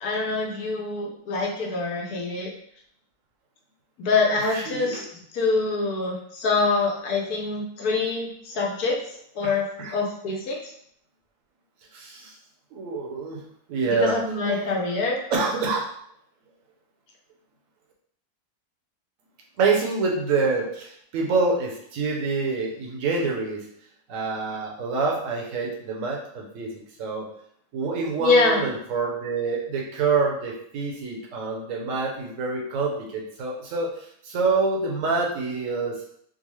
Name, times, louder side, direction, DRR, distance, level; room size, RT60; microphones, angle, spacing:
voice 1, 0.0-2.5 4.0-5.0 5.3-9.0 9.3-9.6 9.9-10.6 13.8-15.2 28.2-28.6, left 3 dB, 75° left, -1 dB, 1.3 m, -25 dB
voice 2, 4.4-5.0 9.4-9.9 11.9-12.3 12.7-13.4 13.7-14.2 14.4-14.8 15.3-15.9 19.6-23.7 24.1-27.3 27.7-36.0, right 4 dB, 65° right, -1 dB, 1.1 m, -26 dB
3.8 x 2.1 x 3.1 m, 0.67 s
omnidirectional pair, 1.6 m